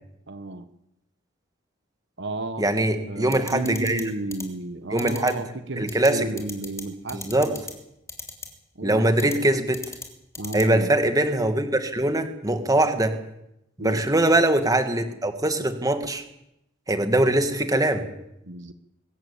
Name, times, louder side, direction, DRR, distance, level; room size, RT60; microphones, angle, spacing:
voice 1, 0.3-0.7 2.2-7.4 8.7-9.4 10.4-10.9 13.8-14.0 18.4-18.7, right 2 dB, 60° right, 11 dB, 1.2 m, -33 dB
voice 2, 2.6-4.0 4.9-5.4 5.8-6.4 7.1-7.6 8.8-9.8 10.5-13.1 13.8-16.2 16.9-18.1, right 1 dB, 20° right, 8 dB, 1.8 m, -22 dB
sound 1, 3.3-4.0 4.3-4.4 5.0-5.3 5.9-6.1 6.4-6.8 7.1-7.7 8.1-8.5 9.2-9.4 9.7-10.1 10.3-10.6, left 4 dB, 15° left, 3.3 m, -35 dB
23.0 x 14.0 x 8.8 m, 0.83 s
head